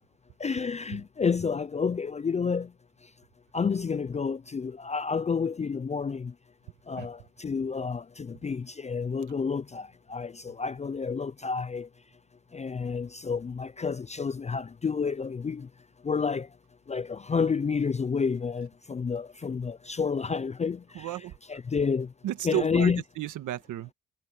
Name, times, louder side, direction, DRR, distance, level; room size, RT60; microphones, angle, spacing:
voice 1, 0.4-2.7 3.5-6.3 6.9-11.9 12.5-15.6 16.1-16.5 16.9-20.8 21.5-22.1 22.4-23.0, left 5 dB, 25° left, 0.5 m, -29 dB
voice 2, 21.0-21.3 22.2-23.9, right 13 dB, 80° right, 1.7 m, -33 dB
cardioid pair, 90°, 30 cm